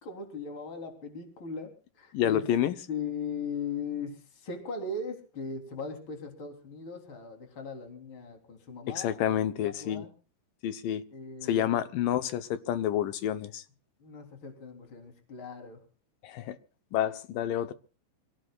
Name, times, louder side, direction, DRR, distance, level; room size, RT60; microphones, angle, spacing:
voice 1, 0.0-1.7 2.0-2.4 2.9-9.4 9.6-10.1 11.1-11.8 14.0-15.8, left 4 dB, 30° left, 3.9 m, -38 dB
voice 2, 2.1-2.8 9.0-10.1 10.6-11.0 11.4-13.6 16.2-16.6 16.9-17.7, left 10 dB, 70° left, 2.3 m, -29 dB
26.5 x 17.5 x 2.4 m
omnidirectional pair, 4.9 m